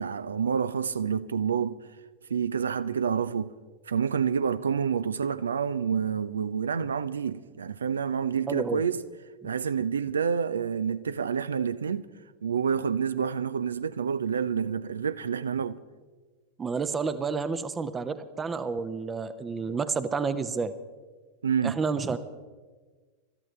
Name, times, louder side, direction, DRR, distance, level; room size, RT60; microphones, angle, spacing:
voice 1, 0.0-1.8 2.3-3.5 3.9-9.0 9.4-12.1 12.4-15.8 21.4-21.8, right 7 dB, 70° right, 0.5 m, -28 dB
voice 2, 8.5-8.8 16.6-20.7 21.6-22.2, right 5 dB, 20° right, 0.8 m, -30 dB
25.5 x 13.5 x 3.3 m
figure-of-eight pair, 90°, 0 cm